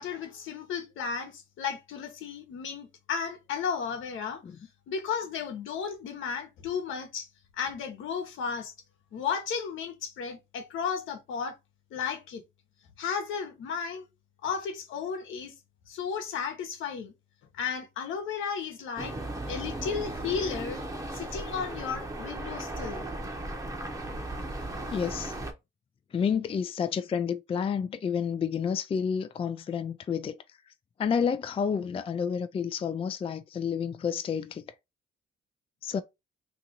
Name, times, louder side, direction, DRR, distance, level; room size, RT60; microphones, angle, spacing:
voice 1, 0.0-4.4 4.9-7.3 7.6-8.7 9.1-11.6 11.9-12.4 13.0-14.1 14.4-15.5 15.9-17.1 17.5-19.1 19.5-20.8 21.1-23.0, left 6 dB, 80° left, 1.0 m, -34 dB
sound 1, 19.0-25.5, right 1 dB, 15° right, 0.9 m, -36 dB
voice 2, 24.9-25.3 26.1-30.4 31.0-34.6 35.8-36.0, left 7 dB, 30° left, 0.3 m, -30 dB
2.9 x 2.5 x 3.9 m
cardioid pair, 90°, 20 cm